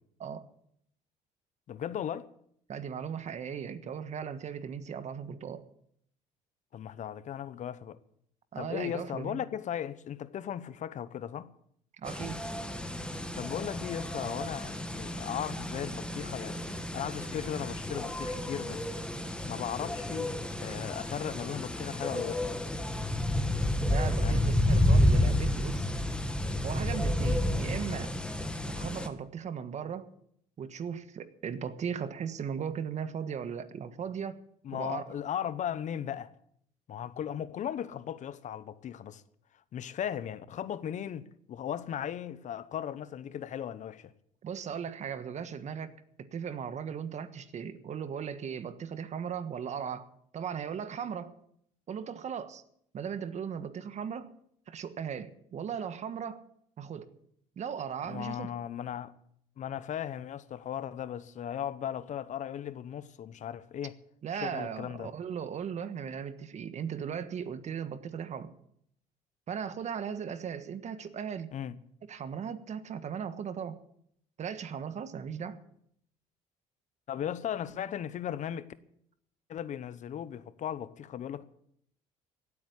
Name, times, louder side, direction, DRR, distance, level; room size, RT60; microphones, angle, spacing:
voice 1, 1.7-2.3 6.7-8.0 8.6-11.5 13.3-16.6 16.9-18.8 19.4-20.3 20.6-22.5 24.2-24.4 34.6-36.3 36.9-39.2 39.7-44.1 58.1-59.1 59.6-63.9 64.3-65.1 71.5-71.8 77.1-78.7 79.5-81.4, left 9 dB, 55° left, 1.0 m, -37 dB
voice 2, 2.7-5.6 8.5-9.4 12.0-12.4 23.9-25.9 26.6-28.1 28.8-30.1 30.6-34.4 34.7-35.1 44.4-45.9 46.2-51.4 51.9-52.6 52.9-54.3 54.7-56.4 56.8-57.1 57.6-58.5 64.2-68.5 69.5-71.5 72.1-73.8 74.4-75.6, right 7 dB, 50° right, 1.5 m, -37 dB
sound 1, 12.1-29.1, left 1 dB, 5° left, 1.7 m, -30 dB
17.0 x 8.5 x 8.4 m
supercardioid pair, 75°, 15 cm